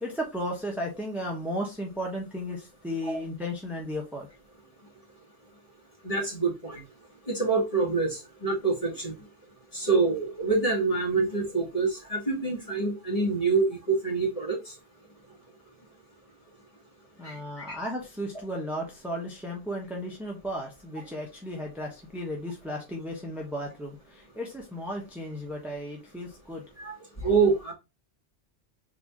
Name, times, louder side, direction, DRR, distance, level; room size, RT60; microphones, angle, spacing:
voice 1, 0.0-4.3 17.2-26.6, equal, ahead, 0.9 m, -35 dB
voice 2, 6.0-6.8 7.3-9.1 9.7-14.6 17.2-17.3 26.8-26.9 27.2-27.7, right 4 dB, 30° left, 1.8 m, -26 dB
3.7 x 2.9 x 3.6 m
omnidirectional pair, 1.2 m